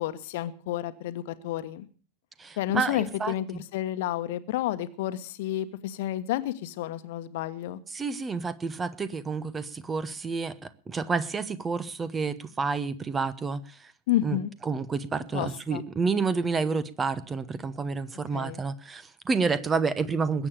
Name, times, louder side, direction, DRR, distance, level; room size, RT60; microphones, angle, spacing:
voice 1, 0.0-1.9 2.6-7.8 14.1-14.5 15.3-15.8 18.3-18.6, left 13 dB, 50° left, 12 dB, 1.3 m, -30 dB
voice 2, 2.4-3.6 7.9-13.9 14.2-14.4 14.6-20.5, right 4 dB, 15° right, 16 dB, 1.0 m, -29 dB
21.0 x 8.7 x 6.7 m, 0.38 s
figure-of-eight pair, 90°, 0 cm